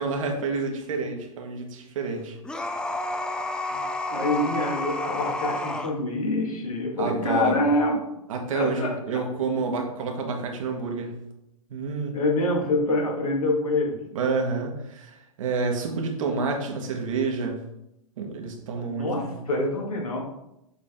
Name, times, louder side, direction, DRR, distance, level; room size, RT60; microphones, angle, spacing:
voice 1, 0.0-2.4 7.0-7.7 8.3-11.1 11.7-12.2 14.1-17.6 18.2-19.5, right 4 dB, 65° right, 2 dB, 1.5 m, -29 dB
sound 1, 2.4-5.9, left 2 dB, 5° left, 0.4 m, -30 dB
voice 2, 4.1-8.0 8.5-9.2 12.1-14.0 18.8-20.2, left 2 dB, 75° left, -1 dB, 2.1 m, -26 dB
7.3 x 4.1 x 3.7 m, 0.84 s
figure-of-eight pair, 105°, 18 cm